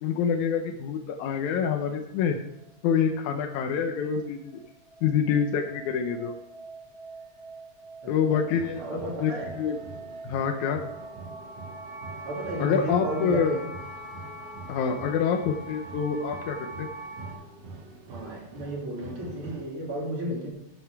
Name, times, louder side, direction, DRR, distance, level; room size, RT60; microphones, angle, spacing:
voice 1, 0.0-2.4 2.8-4.6 5.0-6.4 8.1-9.8 10.2-10.8 12.6-13.6 14.7-16.9, left 7 dB, 80° left, 4 dB, 2.2 m, -26 dB
sound 1, 4.5-17.3, right 2 dB, 30° right, 1.1 m, -43 dB
sound 2, 8.5-19.6, right 3 dB, 85° right, 3.1 m, -45 dB
voice 2, 8.8-9.5 12.2-13.7 18.1-20.5, right 1 dB, 45° right, -2 dB, 3.4 m, -33 dB
13.0 x 7.9 x 4.7 m, 0.85 s
omnidirectional pair, 3.5 m